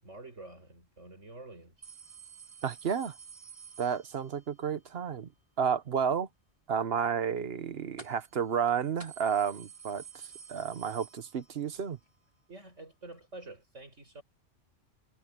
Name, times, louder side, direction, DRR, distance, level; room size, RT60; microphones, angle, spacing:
voice 1, 0.0-1.8 12.5-14.2, right 2 dB, 70° right, 6.9 m, -48 dB
sound 1, 1.8-4.5 8.0-8.4 8.7-8.8 9.0-11.7 12.1-12.2 13.2-13.3, right 6 dB, 25° right, 4.4 m, -50 dB
voice 2, 2.6-3.1 3.8-5.3 5.6-6.3 6.7-10.0 10.5-12.0, right 7 dB, 55° right, 1.1 m, -31 dB
omnidirectional pair, 1.3 m